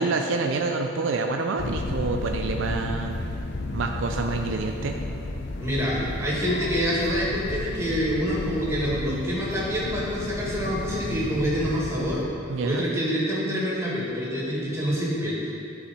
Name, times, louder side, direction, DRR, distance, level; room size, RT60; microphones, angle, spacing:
voice 1, 0.0-3.2 3.7-5.0 12.5-12.9, right 3 dB, 70° right, 3 dB, 0.5 m, -27 dB
sound 1, 1.6-12.2, left 2 dB, 60° left, 0.6 m, -32 dB
voice 2, 5.6-12.2 12.6-15.5, equal, 15° right, -7 dB, 2.0 m, -26 dB
11.5 x 4.8 x 4.2 m, 2.5 s
head